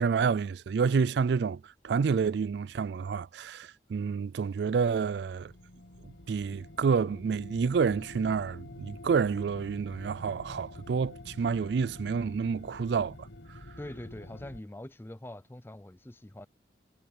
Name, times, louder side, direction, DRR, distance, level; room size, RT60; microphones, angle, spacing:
voice 1, 0.0-5.5 6.3-13.3, right 5 dB, 65° right, 0.3 m, -29 dB
sound 1, 5.2-14.6, left 1 dB, 75° left, 1.5 m, -48 dB
voice 2, 13.8-16.5, left 1 dB, 10° left, 0.5 m, -43 dB
head